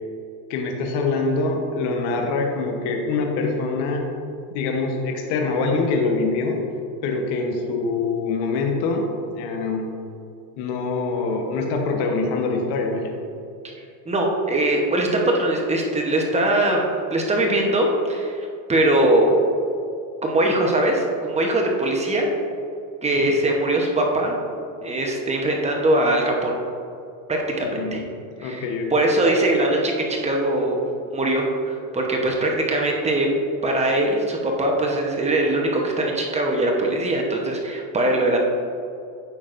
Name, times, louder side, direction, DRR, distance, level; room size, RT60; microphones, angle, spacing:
voice 1, 0.5-4.0 4.5-6.6 7.0-9.1 9.3-9.9 10.6-13.1 23.1-23.3 27.6-28.1 28.3-29.0, left 3 dB, 50° left, 2 dB, 1.1 m, -24 dB
voice 2, 14.1-18.4 18.7-19.3 20.2-22.3 23.0-24.4 24.8-26.6 27.3-28.0 28.4-28.6 28.9-30.8 31.1-33.3 33.6-38.4, right 1 dB, 15° right, 0 dB, 0.9 m, -21 dB
9.1 x 6.1 x 2.5 m, 2.6 s
supercardioid pair, 125°, 50 cm